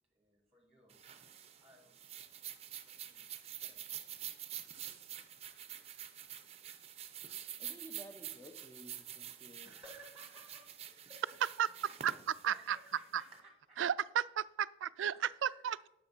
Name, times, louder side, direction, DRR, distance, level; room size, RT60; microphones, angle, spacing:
voice 1, 0.1-1.0 1.6-1.9 2.8-3.3 3.6-3.9 9.6-11.5 11.8-11.9 12.5-13.8 15.1-15.7, right 1 dB, 5° right, 1 dB, 1.7 m, -58 dB
sound 1, 0.9-13.3, right 10 dB, 30° right, 0.6 m, -47 dB
voice 2, 7.6-9.7, right 1 dB, 15° left, 5 dB, 0.6 m, -54 dB
voice 3, 12.4-12.8 13.1-13.2 13.8-15.9, right 9 dB, 85° right, 18 dB, 0.3 m, -33 dB
9.6 x 6.5 x 5.4 m, 0.90 s
head